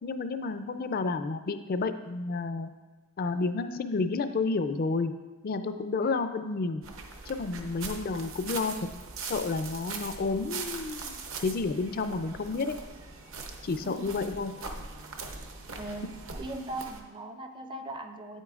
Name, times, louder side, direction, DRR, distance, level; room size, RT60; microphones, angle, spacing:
voice 1, 0.0-2.7 3.2-5.1 5.4-6.8 7.3-8.8 9.2-12.8 13.6-14.5, left 3 dB, 40° left, 10 dB, 0.4 m, -30 dB
sound 1, 6.8-17.0, right 4 dB, 60° right, 0.7 m, -41 dB
voice 2, 13.8-14.1 15.8-16.1 16.4-18.4, right 2 dB, 20° right, 6 dB, 0.4 m, -39 dB
8.9 x 8.2 x 2.4 m, 1.2 s
head